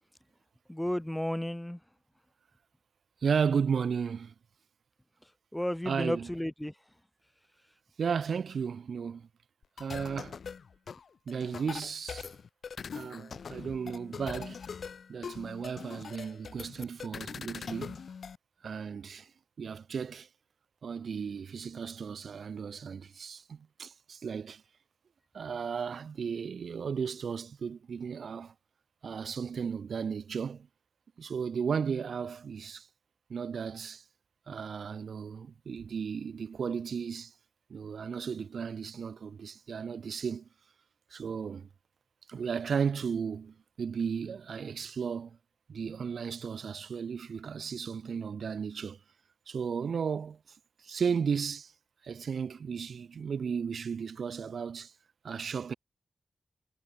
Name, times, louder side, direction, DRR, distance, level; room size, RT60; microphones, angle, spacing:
voice 1, 0.7-1.8 5.5-6.7, left 1 dB, 5° left, 4.2 m, -33 dB
voice 2, 3.2-4.3 5.8-6.4 8.0-9.3 9.8-10.4 11.3-12.3 12.9-14.6 15.1-18.0 18.6-19.3 19.6-20.3 20.8-24.6 25.3-28.5 29.0-30.7 31.2-32.9 33.3-34.0 34.5-37.3 37.7-40.5 41.1-41.7 42.3-45.4 45.7-49.0 49.5-50.4 50.8-51.7 52.0-54.9 55.2-55.7, right 6 dB, 80° right, 0.7 m, -34 dB
sound 1, 9.6-18.4, left 6 dB, 75° left, 5.9 m, -42 dB
wide cardioid pair, 155°, 0 cm